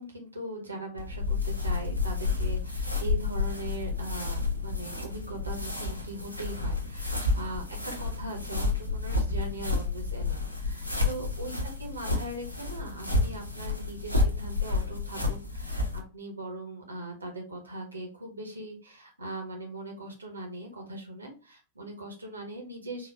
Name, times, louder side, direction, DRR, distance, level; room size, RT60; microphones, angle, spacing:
voice 1, 0.0-23.1, right 1 dB, 80° right, 2 dB, 1.0 m, -40 dB
sound 1, 1.0-16.0, left 3 dB, 90° left, 0.6 m, -30 dB
3.9 x 2.4 x 2.5 m, 0.34 s
figure-of-eight pair, 90°, 0 cm